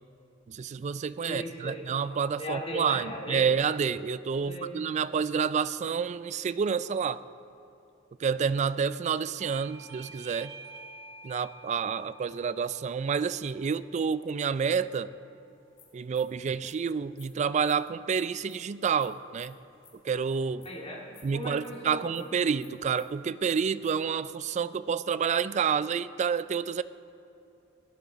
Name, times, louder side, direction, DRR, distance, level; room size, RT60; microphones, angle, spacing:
voice 1, 0.5-7.2 8.2-10.5 11.2-15.1 15.9-19.6 20.0-20.7 21.2-26.8, right 6 dB, 35° right, 15 dB, 0.3 m, -29 dB
voice 2, 1.2-1.9 2.4-3.5 4.4-4.7 20.6-22.2, equal, 30° left, -2 dB, 2.2 m, -37 dB
Bell / Doorbell, 9.4-14.6, right 3 dB, 80° right, 0.9 m, -50 dB
sound 1, 15.5-24.0, left 6 dB, 75° left, 3.1 m, -60 dB
17.0 x 11.5 x 4.1 m, 2.8 s
head